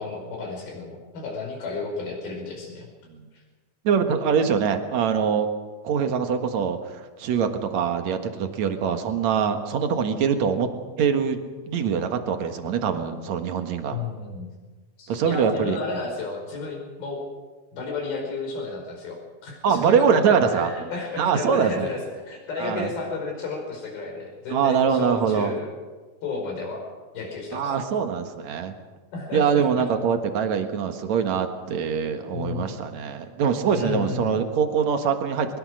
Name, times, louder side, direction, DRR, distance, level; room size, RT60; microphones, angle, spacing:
voice 1, 0.0-2.9 13.9-14.5 15.0-17.2 17.7-19.2 19.4-25.7 26.2-26.9 27.1-27.8 29.1-29.9 32.3-32.8 33.7-34.4, left 3 dB, 85° left, 1 dB, 6.9 m, -32 dB
voice 2, 3.8-5.5 5.8-10.7 11.0-11.4 11.7-14.0 15.1-15.8 19.6-20.7 21.2-21.9 22.6-22.9 24.5-25.5 27.5-28.7 29.3-35.6, right 6 dB, 55° right, 7 dB, 2.6 m, -23 dB
22.5 x 21.5 x 6.4 m, 1.4 s
omnidirectional pair, 4.2 m